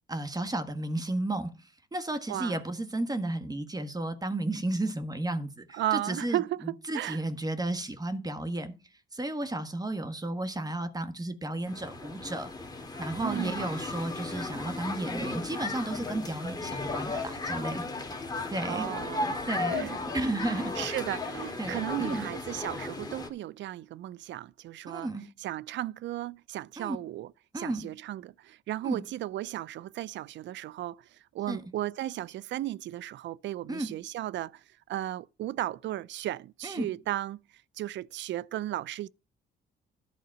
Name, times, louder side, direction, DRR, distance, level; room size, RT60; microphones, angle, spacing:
voice 1, 0.1-1.5 1.9-6.4 6.9-8.7 9.1-12.5 13.0-17.8 18.5-18.9 19.5-19.9 20.1-20.9 21.6-22.3 24.9-25.3 26.8-27.0 27.5-27.8 28.8-29.0 31.5-31.6 33.7-33.9 36.6-36.9, right 2 dB, 20° right, 1.4 m, -33 dB
voice 2, 2.3-2.6 5.7-7.2 13.2-13.6 18.6-19.4 19.7-20.0 20.5-25.1 25.4-37.4 37.8-39.1, right 14 dB, 70° right, 0.4 m, -35 dB
sound 1, 11.7-23.3, left 3 dB, 20° left, 1.8 m, -35 dB
11.5 x 4.0 x 7.3 m
cardioid pair, 90°, 20 cm